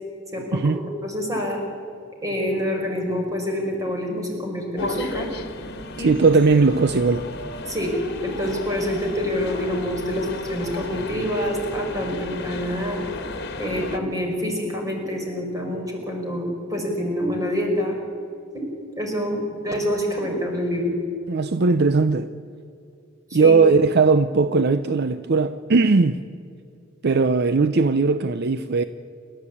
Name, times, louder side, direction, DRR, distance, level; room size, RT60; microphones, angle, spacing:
voice 1, 0.3-1.6 2.2-5.3 6.0-6.1 7.7-8.0 8.2-13.0 13.6-18.0 18.5-18.7 19.0-20.9 23.3-23.6, equal, 15° right, 5.2 m, -26 dB
sound 1, 4.8-14.0, left 2 dB, 55° left, 1.7 m, -33 dB
voice 2, 6.0-7.3 21.3-22.3 23.3-26.2 27.0-28.8, right 4 dB, 55° right, 0.6 m, -18 dB
28.5 x 13.0 x 8.5 m
head